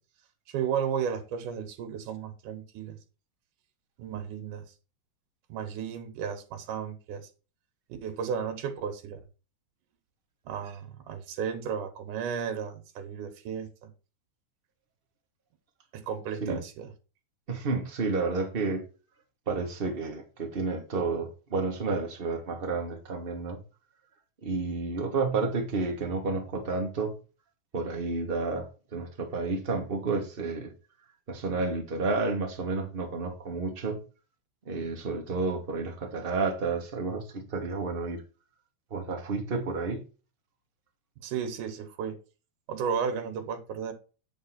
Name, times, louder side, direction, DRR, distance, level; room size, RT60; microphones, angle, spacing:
voice 1, 0.5-3.0 4.0-4.7 5.5-7.3 8.0-9.2 10.5-13.9 15.9-16.9 41.2-42.2 42.7-43.9, right 7 dB, 85° right, 2.7 m, -34 dB
voice 2, 17.5-18.8 19.5-23.6 24.4-27.1 27.7-30.7 31.3-34.0 34.7-38.2 38.9-40.0, right 3 dB, 40° right, 0.8 m, -31 dB
9.3 x 3.8 x 5.8 m
omnidirectional pair, 3.6 m